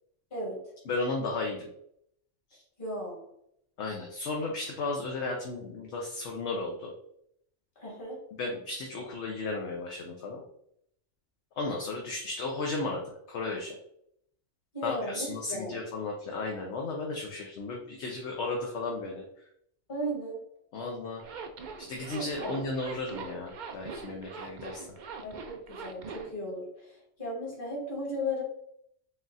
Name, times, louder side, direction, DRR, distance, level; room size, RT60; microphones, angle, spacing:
voice 1, 0.3-0.8 2.8-3.2 7.8-8.2 14.7-15.8 19.9-20.4 22.2-22.7 25.2-28.4, equal, 45° left, -4 dB, 1.8 m, -36 dB
voice 2, 0.9-1.7 3.8-6.9 8.4-10.4 11.6-13.0 13.3-13.8 14.8-19.2 20.7-21.2 21.8-24.9, left 3 dB, 70° left, 0 dB, 0.9 m, -34 dB
Zipper (clothing), 21.2-26.3, right 4 dB, 55° right, 0.5 m, -42 dB
4.0 x 2.4 x 3.9 m, 0.72 s
omnidirectional pair, 1.2 m